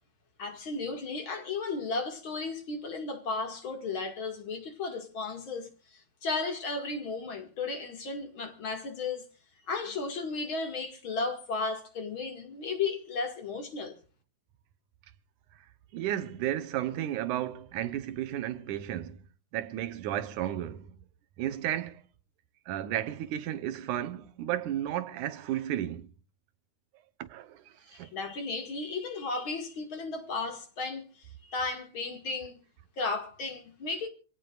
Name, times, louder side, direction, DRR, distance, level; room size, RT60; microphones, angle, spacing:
voice 1, 0.4-9.3 9.7-14.0 27.9-32.6 33.0-34.1, left 3 dB, 45° left, 2.6 m, -34 dB
voice 2, 15.9-19.2 19.5-21.0 21.4-22.0 22.7-26.1 27.2-28.1, right 12 dB, 85° right, 2.5 m, -33 dB
26.5 x 17.5 x 2.5 m
omnidirectional pair, 3.4 m